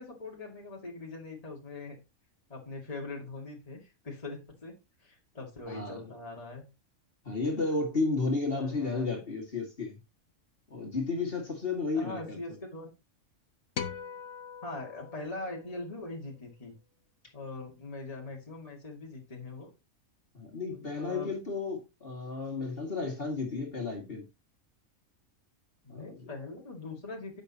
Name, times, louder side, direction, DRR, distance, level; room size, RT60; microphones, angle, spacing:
voice 1, 0.0-2.0 2.5-6.6 8.5-9.2 11.9-12.9 14.6-16.7 17.3-19.7 20.7-21.3 25.8-27.4, left 2 dB, 25° left, 2.2 m, -42 dB
voice 2, 5.7-6.1 7.2-10.0 10.7-12.4 20.3-24.3 25.9-26.3, left 3 dB, 45° left, 2.3 m, -33 dB
sound 1, 13.8-16.2, left 7 dB, 60° left, 1.3 m, -41 dB
10.5 x 7.2 x 2.9 m
omnidirectional pair, 1.4 m